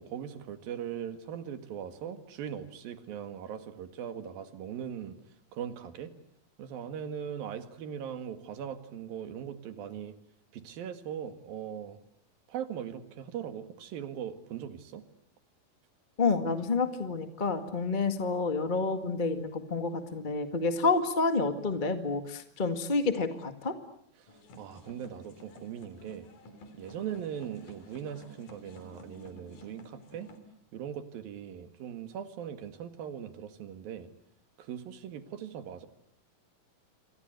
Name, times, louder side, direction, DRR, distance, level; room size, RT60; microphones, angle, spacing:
voice 1, 0.0-5.2 5.5-6.1 6.6-10.2 10.5-12.0 12.5-15.0 24.2-26.3 26.7-30.3 30.7-34.1 34.6-35.9, right 9 dB, 80° right, 10 dB, 3.7 m, -40 dB
voice 2, 16.2-23.7, left 4 dB, 25° left, 8 dB, 1.0 m, -29 dB
sound 1, 24.3-30.4, equal, 65° left, 4.9 m, -52 dB
28.5 x 25.0 x 8.1 m, 0.67 s
omnidirectional pair, 4.1 m